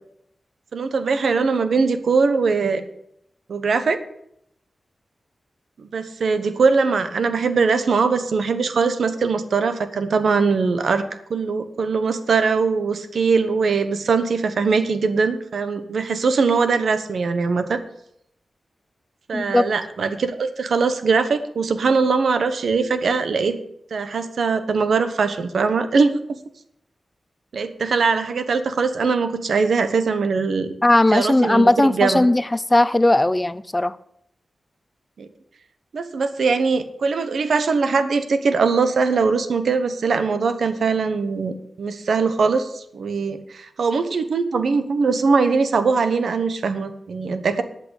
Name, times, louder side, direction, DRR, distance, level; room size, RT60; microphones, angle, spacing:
voice 1, 0.7-2.8 3.5-4.0 5.8-11.0 11.3-17.8 19.3-23.5 23.9-26.2 27.5-30.7 31.1-32.3 35.2-35.3 35.9-47.6, right 4 dB, 85° right, 10 dB, 1.1 m, -21 dB
voice 2, 19.3-19.6 30.8-34.0, left 1 dB, 20° left, 16 dB, 0.5 m, -17 dB
11.5 x 6.0 x 8.1 m, 0.75 s
wide cardioid pair, 80°, 0 cm